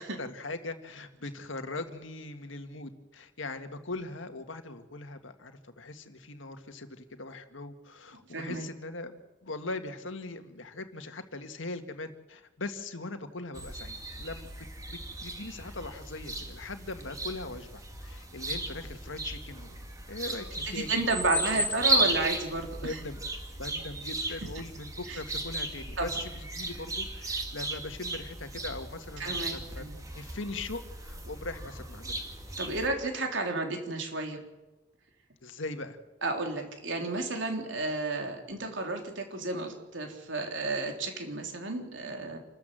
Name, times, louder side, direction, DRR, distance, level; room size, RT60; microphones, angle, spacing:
voice 1, 0.0-14.5 14.9-19.8 20.1-22.1 22.8-23.2 23.6-29.8 30.1-32.2 32.5-32.6 35.4-36.0, left 2 dB, 90° left, 7 dB, 1.9 m, -40 dB
voice 2, 8.3-8.7 20.7-23.0 25.1-25.2 26.0-26.1 29.2-30.0 32.6-34.4 36.2-42.4, right 2 dB, 80° right, 3 dB, 3.6 m, -32 dB
sound 1, 13.5-32.9, right 2 dB, 20° right, 2.3 m, -35 dB
28.0 x 13.5 x 7.7 m, 1.1 s
head